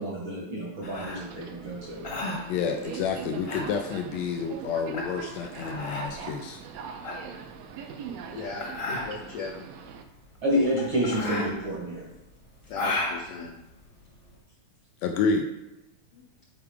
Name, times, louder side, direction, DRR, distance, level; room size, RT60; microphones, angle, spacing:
voice 1, 0.0-2.1 10.4-12.1, equal, 55° right, -3 dB, 1.4 m, -29 dB
sound 1, 0.8-14.4, left 2 dB, 35° left, 0.9 m, -35 dB
Subway metro underground, 1.1-10.0, right 7 dB, 80° right, 1.6 m, -42 dB
voice 2, 2.5-6.6 15.0-15.5, left 5 dB, 85° left, 5 dB, 1.5 m, -29 dB
voice 3, 8.3-9.6 10.5-10.7 12.7-13.5 16.1-16.2, left 4 dB, 70° left, -2 dB, 1.4 m, -36 dB
10.0 x 4.7 x 3.4 m, 0.92 s
omnidirectional pair, 3.7 m